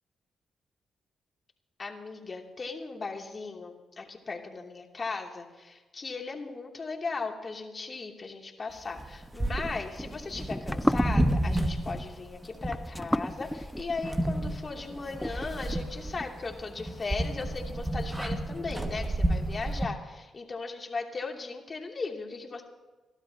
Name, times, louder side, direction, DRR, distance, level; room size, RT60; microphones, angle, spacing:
voice 1, 1.8-22.6, left 4 dB, 45° left, 1 dB, 2.8 m, -37 dB
sound 1, 9.0-19.9, right 1 dB, 20° right, 2.1 m, -31 dB
sound 2, 9.2-16.2, equal, 5° left, 0.4 m, -34 dB
29.5 x 12.0 x 2.9 m, 1.2 s
supercardioid pair, 45°, 0 cm